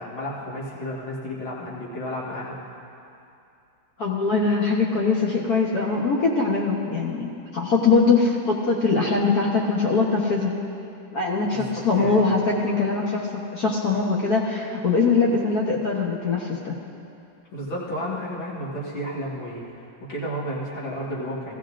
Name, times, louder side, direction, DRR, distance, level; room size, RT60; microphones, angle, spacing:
voice 1, 0.0-2.7 11.5-12.4 17.5-21.6, equal, 85° left, -6 dB, 2.6 m, -32 dB
voice 2, 4.0-10.5 11.1-16.7, left 4 dB, 55° left, -3 dB, 1.4 m, -22 dB
17.5 x 15.0 x 2.5 m, 2.6 s
omnidirectional pair, 2.1 m